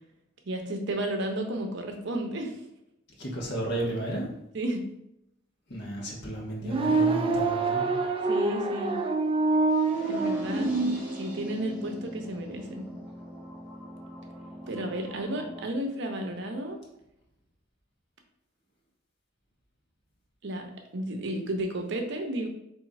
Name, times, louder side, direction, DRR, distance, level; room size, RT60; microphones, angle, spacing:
voice 1, 0.5-2.6 4.5-4.9 8.3-9.0 10.1-10.8 11.1-12.9 14.7-16.8 20.4-22.5, right 1 dB, 65° right, 4 dB, 0.7 m, -32 dB
voice 2, 3.2-4.3 5.7-7.9, right 1 dB, 60° left, -3 dB, 1.3 m, -33 dB
sound 1, 6.6-11.0, right 3 dB, 30° right, 0.4 m, -26 dB
sound 2, 9.7-15.7, right 1 dB, 5° right, 1.1 m, -41 dB
3.7 x 3.1 x 4.1 m, 0.83 s
head